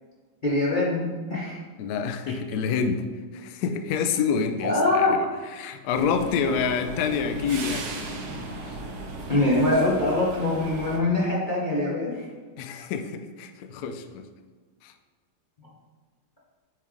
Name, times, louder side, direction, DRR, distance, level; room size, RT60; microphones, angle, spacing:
voice 1, 0.4-1.6 4.6-5.1 9.3-12.2, left 2 dB, 35° left, -6 dB, 0.8 m, -23 dB
voice 2, 1.8-3.0 3.3-5.3 5.5-7.9 8.7-8.8 9.6-9.7 12.6-14.3 14.8-14.9, left 6 dB, 85° left, 7 dB, 0.8 m, -27 dB
sound 1, 5.9-11.0, right 2 dB, 65° right, 1.1 m, -36 dB
7.9 x 3.3 x 3.6 m, 1.5 s
omnidirectional pair, 2.2 m